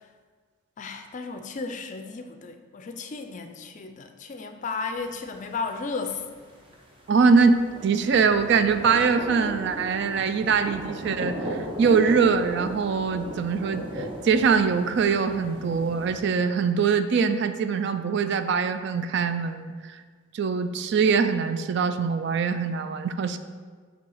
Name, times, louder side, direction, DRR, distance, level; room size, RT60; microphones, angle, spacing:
voice 1, 0.8-6.2, left 4 dB, 40° left, 7 dB, 0.4 m, -34 dB
sound 1, 5.0-16.2, right 1 dB, 25° right, 0.7 m, -37 dB
voice 2, 7.1-20.0 20.3-23.4, right 5 dB, 55° right, 10 dB, 0.3 m, -23 dB
5.5 x 3.3 x 5.5 m, 1.6 s
head